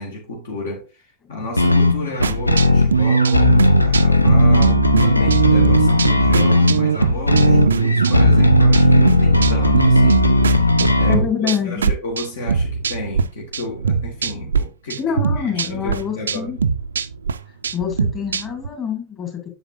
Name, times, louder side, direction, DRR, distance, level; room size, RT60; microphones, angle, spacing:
voice 1, 0.0-11.3 11.6-15.0 15.4-16.5, left 1 dB, 60° left, 1.6 m, -32 dB
sound 1, 1.6-11.2, left 2 dB, 85° left, 0.6 m, -16 dB
sound 2, 2.2-13.3 13.5-14.6 14.9-18.7, right 5 dB, 70° right, 0.4 m, -20 dB
voice 2, 11.1-11.9 15.0-16.6 17.7-19.5, left 7 dB, 30° left, 2.5 m, -25 dB
7.9 x 6.7 x 2.6 m
figure-of-eight pair, 90°, 0 cm